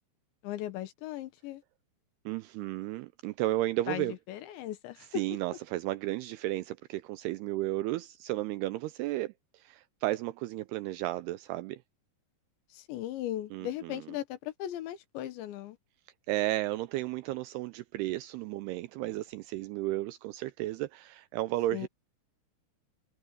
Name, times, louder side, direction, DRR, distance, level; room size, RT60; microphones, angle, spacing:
voice 1, 0.4-1.6 3.9-5.1 12.7-15.8 21.7-21.9, left 13 dB, 80° left, 3.6 m, -38 dB
voice 2, 2.3-4.1 5.1-11.8 13.5-14.2 16.3-21.9, right 16 dB, 85° right, 2.3 m, -33 dB
omnidirectional pair, 5.2 m